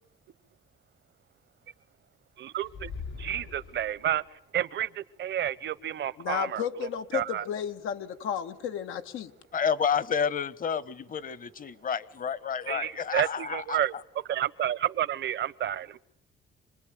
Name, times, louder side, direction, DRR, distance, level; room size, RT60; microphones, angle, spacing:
voice 1, 2.4-2.9 3.2-4.2 4.5-6.6 7.1-7.4 12.7-16.0, right 11 dB, 65° right, 1.1 m, -30 dB
sound 1, 2.6-4.3, left 5 dB, 70° left, 6.1 m, -41 dB
voice 2, 6.2-9.3, left 8 dB, 90° left, 1.7 m, -33 dB
voice 3, 9.5-13.8, left 7 dB, 45° left, 1.3 m, -30 dB
27.0 x 20.5 x 9.4 m
cardioid pair, 90°, 20 cm